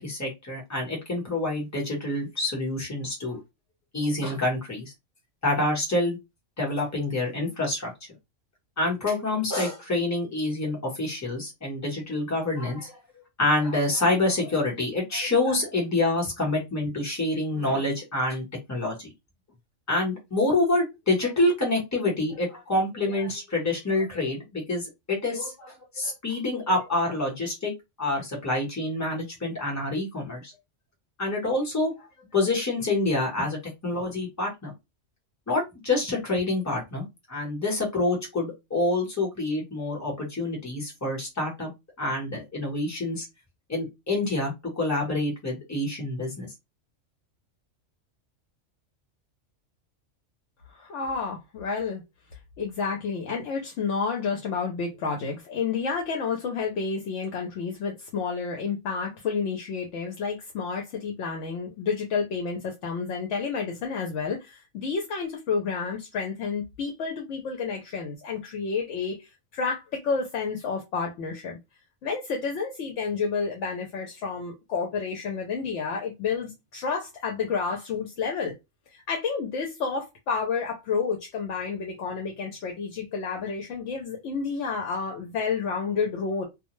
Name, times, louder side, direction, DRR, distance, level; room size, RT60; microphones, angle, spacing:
voice 1, 0.0-3.4 3.9-4.9 5.4-6.2 6.6-7.9 8.8-13.0 13.4-19.1 19.9-27.7 28.0-30.5 31.2-31.9 32.3-34.7 35.5-41.7 42.0-43.3 43.7-46.5, left 2 dB, 15° left, 1.0 m, -27 dB
voice 2, 50.7-52.0 52.6-71.6 72.0-78.5 79.1-86.4, left 5 dB, 70° left, 0.9 m, -30 dB
2.2 x 2.2 x 3.0 m
omnidirectional pair, 1.3 m